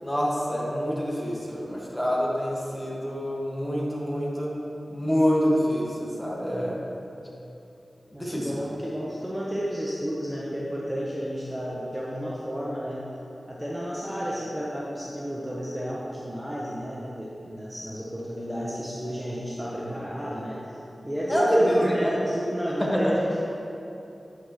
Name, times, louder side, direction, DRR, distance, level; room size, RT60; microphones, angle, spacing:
voice 1, 0.0-4.5 4.9-6.8 8.1-8.5 21.3-22.1 22.8-23.1, equal, 15° left, -4 dB, 1.7 m, -26 dB
voice 2, 8.1-13.1 13.5-20.8 21.0-23.4, equal, 15° right, -5 dB, 0.9 m, -31 dB
9.5 x 6.4 x 3.1 m, 2.8 s
wide cardioid pair, 60°, 0 cm